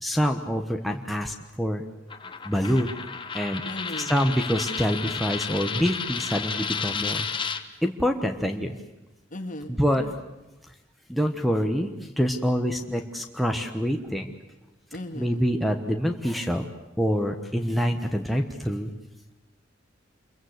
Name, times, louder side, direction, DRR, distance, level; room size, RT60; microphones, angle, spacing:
voice 1, 0.0-1.8 2.4-2.9 3.3-3.6 4.1-7.3 7.8-8.7 9.7-10.0 11.1-14.3 15.1-16.6 17.0-18.9, equal, ahead, 3 dB, 1.2 m, -26 dB
Coin (dropping), 2.1-7.6, left 6 dB, 25° left, 1.3 m, -32 dB
voice 2, 3.6-4.1 9.3-10.2 14.9-15.4, left 1 dB, 45° left, 6 dB, 2.2 m, -37 dB
27.0 x 23.0 x 8.1 m, 1.0 s
head